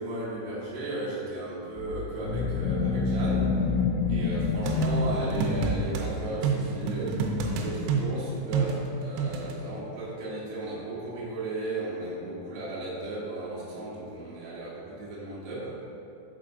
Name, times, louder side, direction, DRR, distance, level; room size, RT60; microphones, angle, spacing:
voice 1, 0.0-3.6 4.1-7.3 7.6-15.9, right 2 dB, 70° right, -7 dB, 3.1 m, -35 dB
sound 1, 1.8-6.2, left 4 dB, 90° left, 2.9 m, -28 dB
sound 2, 4.7-6.1 6.4-9.6, right 4 dB, 90° right, 2.9 m, -28 dB
7.1 x 4.2 x 3.8 m, 2.8 s
omnidirectional pair, 5.2 m